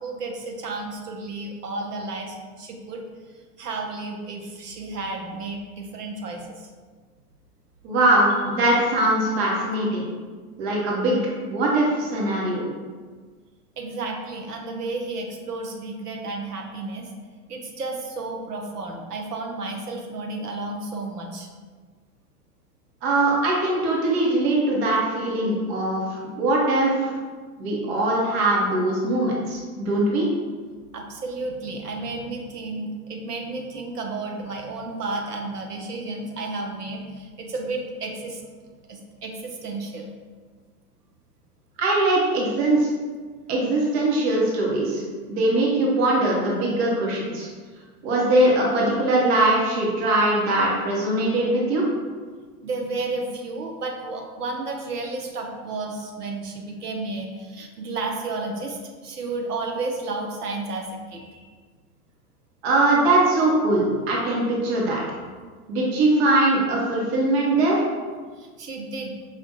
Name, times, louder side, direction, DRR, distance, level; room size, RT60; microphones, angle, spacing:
voice 1, 0.0-3.1 3.6-6.6 13.8-17.1 17.5-21.5 30.9-38.4 38.9-40.1 52.6-61.5 68.4-69.2, right 3 dB, 75° right, 1 dB, 0.8 m, -32 dB
voice 2, 7.8-10.1 10.6-11.2 11.5-12.6 23.0-27.1 27.6-30.3 41.8-42.9 43.5-45.0 45.3-47.5 48.0-51.8 62.6-65.0 65.7-67.8, right 2 dB, 40° right, -3 dB, 1.0 m, -21 dB
5.0 x 2.4 x 2.7 m, 1.5 s
figure-of-eight pair, 95°, 47 cm